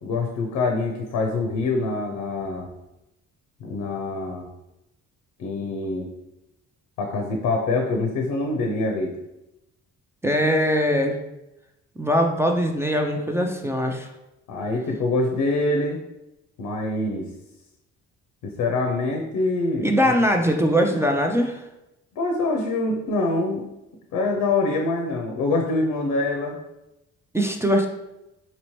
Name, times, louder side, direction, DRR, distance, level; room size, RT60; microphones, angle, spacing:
voice 1, 0.0-2.7 3.6-4.5 5.4-6.1 7.0-9.1 14.5-16.0 16.6-17.2 18.4-20.1 22.2-23.6 24.1-26.6, left 2 dB, 85° left, 2 dB, 0.6 m, -25 dB
voice 2, 10.2-11.2 12.0-14.1 19.8-21.6 27.3-27.9, equal, 10° right, 3 dB, 0.4 m, -21 dB
4.2 x 2.8 x 3.0 m, 0.92 s
cardioid pair, 90°, 30 cm